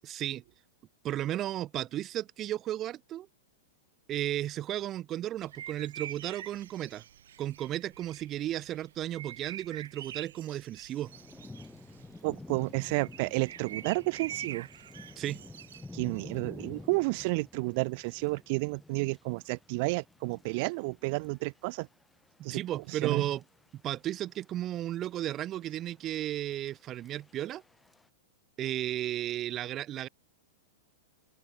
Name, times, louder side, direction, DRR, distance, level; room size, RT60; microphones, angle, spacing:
voice 1, 0.0-0.4 1.0-3.3 4.1-7.0 7.4-11.1 15.2-15.4 22.5-23.4 23.7-27.6 28.6-30.1, right 13 dB, 30° right, 1.4 m, -34 dB
sound 1, 5.4-17.1, right 10 dB, 80° right, 1.7 m, -46 dB
Thunder / Rain, 11.0-28.1, left 2 dB, 5° left, 3.9 m, -51 dB
voice 2, 12.2-14.7 15.9-21.9 22.4-23.3, right 28 dB, 50° right, 0.8 m, -31 dB
open air
hypercardioid pair, 135°, 0 cm